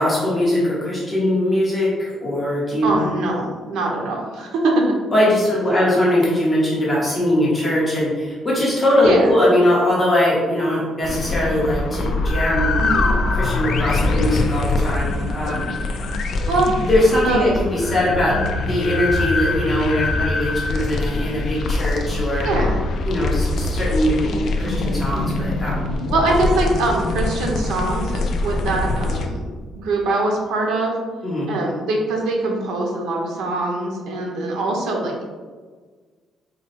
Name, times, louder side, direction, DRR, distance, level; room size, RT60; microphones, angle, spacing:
voice 1, 0.0-2.9 5.1-12.7 13.3-15.7 16.8-22.5 23.1-24.2 24.6-25.9 31.2-31.5, left 1 dB, 15° left, -6 dB, 0.8 m, -20 dB
voice 2, 2.8-5.0 9.0-9.3 12.8-13.2 16.5-16.7 17.2-17.5 18.3-18.4 22.4-22.8 24.2-24.4 26.1-29.4 29.7-31.0 31.5-35.2, right 2 dB, 90° right, 0 dB, 0.7 m, -23 dB
sound 1, 11.0-29.3, left 2 dB, 45° left, 0.3 m, -23 dB
4.2 x 2.2 x 4.0 m, 1.5 s
cardioid pair, 180°, 0 cm